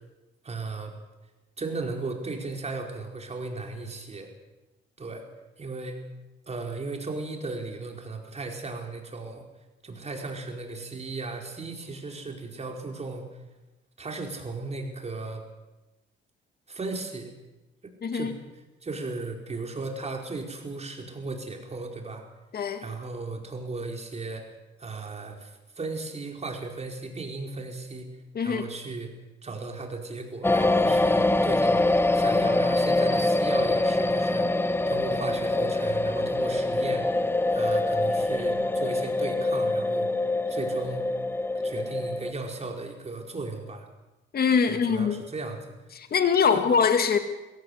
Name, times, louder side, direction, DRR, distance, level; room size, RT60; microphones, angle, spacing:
voice 1, 0.4-0.9 1.6-4.3 5.0-5.2 5.6-6.1 6.5-9.4 9.8-13.3 14.0-15.4 16.7-17.3 18.1-18.3 18.8-22.2 22.8-24.5 24.8-25.5 25.8-28.1 28.4-29.1 29.4-31.8 32.1-37.1 37.5-40.1 40.5-41.1 41.6-43.9 44.7-45.6 46.5-46.6, right 3 dB, 35° right, 2 dB, 4.9 m, -36 dB
voice 2, 18.0-18.3 22.5-22.8 28.3-28.7 44.3-45.2 45.9-47.2, left 6 dB, 50° left, 7 dB, 2.1 m, -23 dB
sound 1, 30.4-42.3, left 2 dB, 10° left, 1.0 m, -24 dB
22.0 x 17.0 x 8.2 m, 1.1 s
cardioid pair, 90°, 20 cm